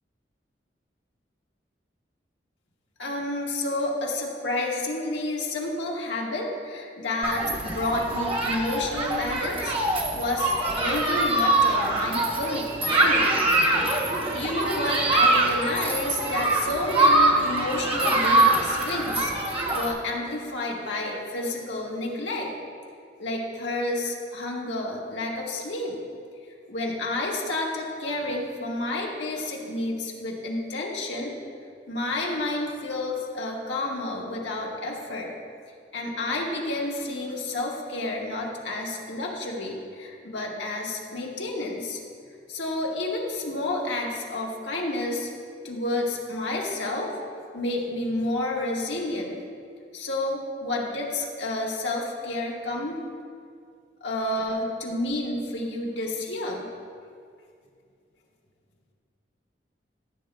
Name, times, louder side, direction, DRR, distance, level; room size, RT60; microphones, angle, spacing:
voice 1, 3.0-9.7 10.1-13.4 13.7-14.0 14.3-19.3 19.7-22.5 23.2-26.0 26.7-31.3 31.9-35.3 35.9-42.0 42.5-45.3 45.6-47.1 47.5-49.4 49.9-53.0 54.0-56.7, left 2 dB, 85° left, -2 dB, 1.5 m, -30 dB
Human group actions, 7.2-19.9, right 2 dB, 30° right, 0.8 m, -23 dB
15.0 x 8.1 x 2.2 m, 2.2 s
head